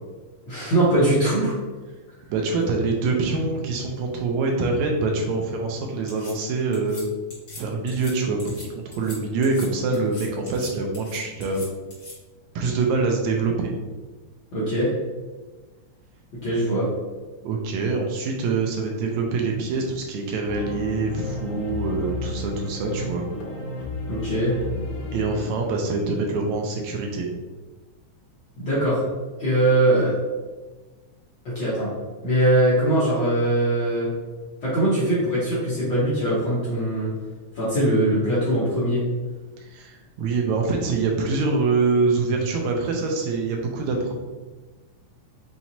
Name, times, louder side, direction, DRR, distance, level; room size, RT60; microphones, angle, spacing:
voice 1, 0.5-1.5 14.5-14.9 16.4-16.9 24.1-24.6 28.6-29.0 29.4-30.1 31.4-31.9 32.2-34.1 34.6-37.1 37.5-39.0, right 1 dB, 60° left, -9 dB, 1.3 m, -21 dB
voice 2, 2.3-7.1 7.5-11.6 12.6-13.7 17.4-23.3 25.1-27.3 39.6-44.1, right 3 dB, 80° right, 1 dB, 1.9 m, -25 dB
sound 1, 6.1-6.3 6.7-7.0 7.3-7.6 7.9-8.1 8.4-8.6 8.9-9.2 9.4-9.7 9.9-10.7 10.9-12.1, left 2 dB, 35° left, 1.5 m, -41 dB
sound 2, 20.5-25.5, left 2 dB, 80° left, 2.1 m, -32 dB
5.8 x 2.9 x 2.7 m, 1.3 s
omnidirectional pair, 3.4 m